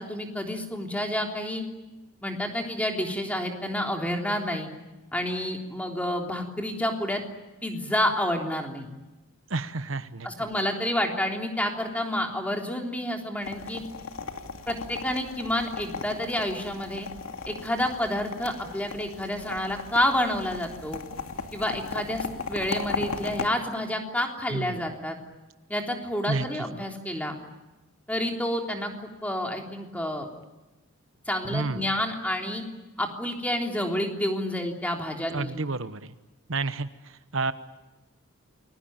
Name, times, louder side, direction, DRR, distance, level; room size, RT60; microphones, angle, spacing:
voice 1, 0.0-1.6 2.2-4.7 5.1-7.2 7.6-8.9 10.2-13.8 14.7-17.1 17.5-21.0 21.5-25.2 25.7-27.3 28.1-30.3 31.3-32.6 33.0-35.5, left 1 dB, 5° left, 2 dB, 3.4 m, -29 dB
voice 2, 9.5-10.3 24.5-24.8 26.3-26.6 31.5-31.9 35.3-36.1 36.5-37.5, right 3 dB, 65° right, 12 dB, 1.1 m, -30 dB
sound 1, 13.4-23.5, left 4 dB, 80° left, 2.5 m, -37 dB
29.5 x 22.0 x 8.9 m, 1.1 s
head